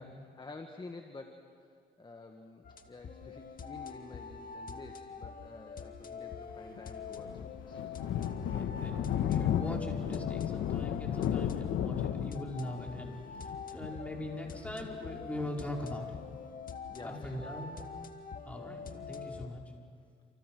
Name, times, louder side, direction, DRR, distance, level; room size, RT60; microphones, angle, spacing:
voice 1, 0.0-1.7 2.0-7.9 12.9-13.2 16.9-17.8, left 3 dB, 25° left, 5 dB, 1.8 m, -50 dB
sound 1, 2.6-19.5, left 5 dB, 45° left, 1.9 m, -45 dB
Thunder, 6.7-15.9, left 10 dB, 80° left, 1.4 m, -34 dB
voice 2, 8.3-16.2 17.0-17.7 18.4-19.6, left 1 dB, 5° left, -1 dB, 5.1 m, -41 dB
30.0 x 28.0 x 6.3 m, 2.1 s
cardioid pair, 90°, 20 cm